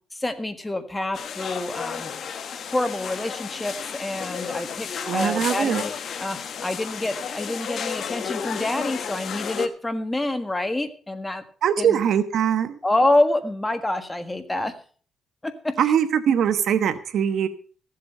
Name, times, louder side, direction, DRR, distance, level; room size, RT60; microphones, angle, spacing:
voice 1, 0.2-2.1 2.7-5.9 6.2-11.4 11.8-12.0 12.8-14.7 15.4-15.7, left 1 dB, 15° left, 9 dB, 1.5 m, -27 dB
sound 1, 1.1-9.7, left 7 dB, 55° left, 1.2 m, -32 dB
voice 2, 5.1-5.8 11.6-12.8 15.8-17.5, right 8 dB, 70° right, 11 dB, 1.1 m, -22 dB
15.0 x 7.7 x 5.5 m, 0.42 s
cardioid pair, 90°, 0 cm